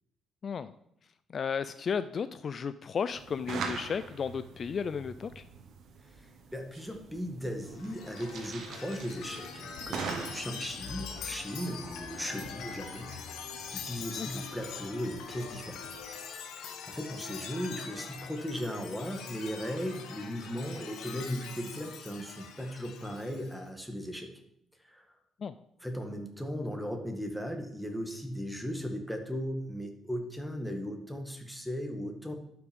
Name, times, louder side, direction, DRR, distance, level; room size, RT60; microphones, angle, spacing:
voice 1, 1.3-5.4 14.2-14.3 25.4-25.5, left 6 dB, 50° left, 13 dB, 0.4 m, -34 dB
sound 1, 3.1-16.1, right 5 dB, 70° right, 1.3 m, -44 dB
voice 2, 6.2-13.1 13.7-15.8 16.9-24.3 24.8-25.1 25.8-32.3, equal, ahead, 3 dB, 1.9 m, -37 dB
Chime, 7.7-23.6, left 6 dB, 85° left, 1.4 m, -43 dB
11.5 x 6.0 x 5.3 m, 0.74 s
cardioid pair, 90°, 0 cm